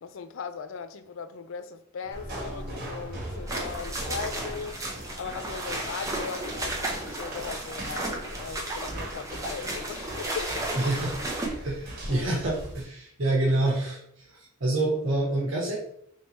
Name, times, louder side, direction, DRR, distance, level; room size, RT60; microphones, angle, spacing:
voice 1, 0.0-4.8 5.2-10.5 12.1-12.3 14.9-15.2, left 6 dB, 65° left, 0.4 m, -38 dB
Mechanisms, 2.0-8.7, equal, 50° left, 1.4 m, -47 dB
sound 1, 2.1-12.9, right 1 dB, 45° right, 1.3 m, -40 dB
sound 2, 3.5-11.5, right 2 dB, 15° right, 0.7 m, -34 dB
voice 2, 10.8-11.2 11.6-14.0 14.3-15.8, right 2 dB, 65° right, 1.0 m, -27 dB
3.3 x 2.7 x 4.3 m
head